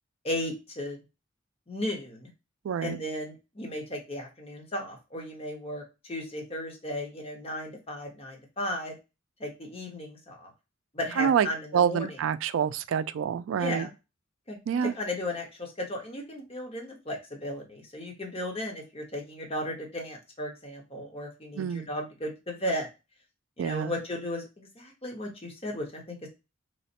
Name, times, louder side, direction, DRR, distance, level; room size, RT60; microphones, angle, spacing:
voice 1, 0.2-1.0 1.7-2.3 2.8-8.9 9.4-10.5 10.9-12.2 13.6-13.9 14.5-22.9 23.6-26.3, left 1 dB, 30° left, 1.1 m, -35 dB
voice 2, 2.7-3.0 11.2-11.5 11.7-13.9 14.7-14.9 21.6-21.9 23.6-23.9, right 8 dB, 85° right, 0.3 m, -27 dB
3.2 x 2.1 x 4.1 m
head